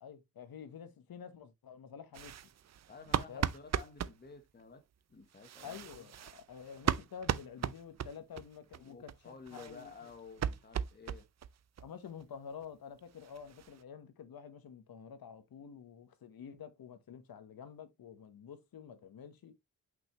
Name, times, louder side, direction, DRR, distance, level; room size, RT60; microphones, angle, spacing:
voice 1, 0.0-2.4 3.3-3.5 5.6-10.1 11.8-19.5, left 7 dB, 70° left, 1.3 m, -49 dB
sound 1, 2.1-4.2 5.3-8.4 8.7-8.8 9.1-9.2 9.5-11.5 11.8-11.9 12.2-12.3 12.6-12.7 13.0-13.8, right 9 dB, 45° right, 0.5 m, -37 dB
voice 2, 2.9-6.1 8.7-11.3, left 4 dB, 25° left, 1.1 m, -53 dB
6.0 x 5.6 x 3.0 m
wide cardioid pair, 145°, 37 cm